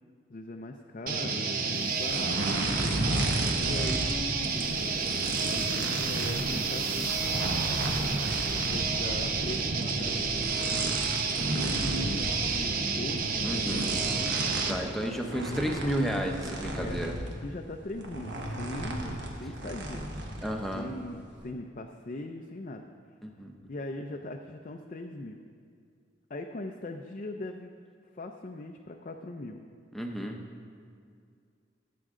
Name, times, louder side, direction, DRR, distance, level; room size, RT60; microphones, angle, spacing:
voice 1, 0.3-2.4 3.6-4.8 6.0-7.4 8.6-10.8 11.5-14.4 16.8-17.0 17.4-20.1 20.7-22.9 23.7-25.4 26.3-27.7 28.1-29.6, left 2 dB, 40° left, 3 dB, 0.5 m, -40 dB
sound 1, 1.1-14.8, right 4 dB, 45° right, 0.8 m, -30 dB
sound 2, 1.7-2.9 4.2-9.7 10.5-11.4, right 1 dB, 15° right, 1.3 m, -49 dB
sound 3, 2.1-4.2 4.4-17.3 17.9-20.8 21.1-21.4, right 1 dB, 65° right, 1.3 m, -34 dB
voice 2, 13.4-13.9 14.7-17.1 20.4-20.9 23.2-23.5 29.9-30.4, equal, ahead, 1 dB, 0.8 m, -32 dB
16.5 x 7.7 x 3.7 m, 2.3 s
head